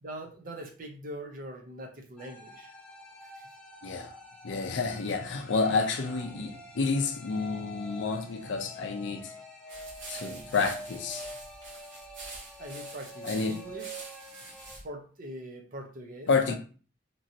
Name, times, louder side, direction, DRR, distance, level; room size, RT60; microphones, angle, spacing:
voice 1, 0.0-2.7 3.2-3.4 12.6-13.9 14.8-16.6, right 1 dB, 45° right, 0.6 m, -42 dB
sound 1, 2.2-14.7, right 1 dB, 5° left, 0.6 m, -46 dB
voice 2, 3.8-4.1 4.4-9.3 10.1-11.3 13.2-13.6 16.3-16.6, left 4 dB, 65° left, 0.4 m, -29 dB
sound 2, 9.7-14.8, right 2 dB, 65° right, 1.0 m, -46 dB
3.0 x 2.6 x 2.7 m
head